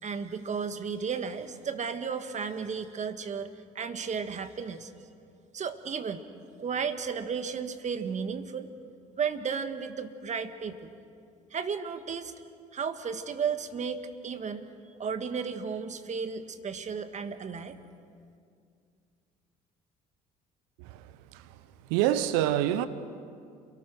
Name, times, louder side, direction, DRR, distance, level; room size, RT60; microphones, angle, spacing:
voice 1, 0.0-3.5 3.7-4.9 5.5-6.3 6.6-8.7 9.2-10.9 11.5-12.3 12.7-14.7 15.0-17.8, right 6 dB, 40° right, 1.7 m, -34 dB
voice 2, 21.9-22.9, right 12 dB, 75° right, 0.9 m, -26 dB
28.0 x 18.5 x 6.3 m
hypercardioid pair, 60°, 18 cm